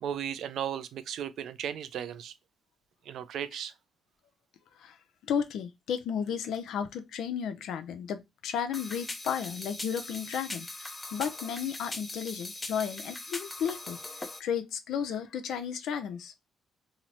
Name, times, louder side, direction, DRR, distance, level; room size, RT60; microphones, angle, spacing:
voice 1, 0.0-2.3 3.1-3.7, right 9 dB, 75° right, 0.4 m, -35 dB
voice 2, 5.3-14.0 14.4-16.3, left 8 dB, 80° left, 0.5 m, -33 dB
sound 1, 8.7-14.4, left 2 dB, 20° left, 0.6 m, -40 dB
3.0 x 2.0 x 3.9 m
cardioid pair, 90°, 0 cm